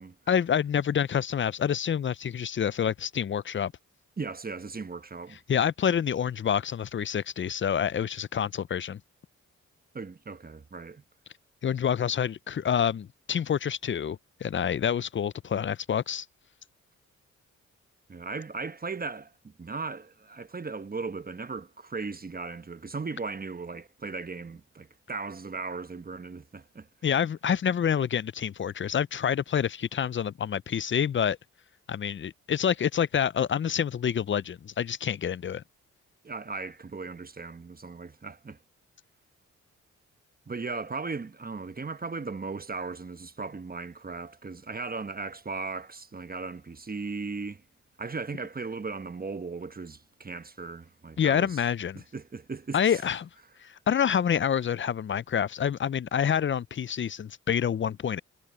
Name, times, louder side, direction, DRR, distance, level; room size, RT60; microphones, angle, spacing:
voice 1, 0.3-3.7 5.5-9.0 11.6-16.3 27.0-31.4 31.9-35.6 51.2-52.0 52.7-53.3 53.6-58.2, left 8 dB, 40° left, 0.5 m, -27 dB
voice 2, 4.2-5.4 9.9-11.0 18.1-26.9 36.2-38.6 40.5-47.6 48.0-51.6 51.9-53.0, right 4 dB, 30° right, 1.1 m, -37 dB
cardioid pair, 55°, 31 cm